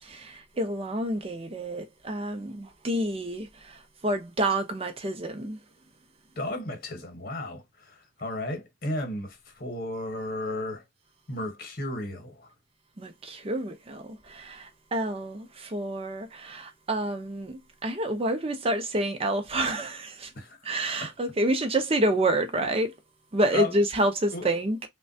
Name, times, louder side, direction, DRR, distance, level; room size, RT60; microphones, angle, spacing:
voice 1, 0.0-5.6 13.0-20.3 20.6-23.0 23.3-24.8, right 1 dB, 30° right, 0.6 m, -28 dB
voice 2, 6.4-10.8 11.3-12.5 20.3-20.6 21.0-21.1 23.5-23.7 24.3-24.6, left 2 dB, 50° left, 1.0 m, -34 dB
3.2 x 2.2 x 2.6 m
head